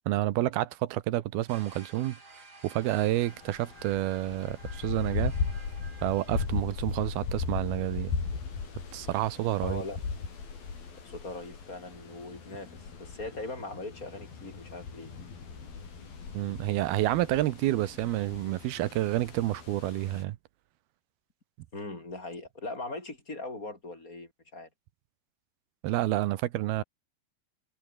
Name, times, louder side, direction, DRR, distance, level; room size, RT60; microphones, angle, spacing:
voice 1, 0.1-2.2 2.6-5.3 6.0-8.1 8.9-9.8 16.3-20.4 25.8-26.8, right 15 dB, 90° right, 3.0 m, -29 dB
sound 1, 1.5-6.5, right 3 dB, 25° right, 5.0 m, -52 dB
sound 2, 2.8-20.2, left 5 dB, 70° left, 7.1 m, -38 dB
voice 2, 9.6-10.0 11.0-15.1 21.7-24.7, left 2 dB, 20° left, 5.7 m, -40 dB
omnidirectional pair, 4.4 m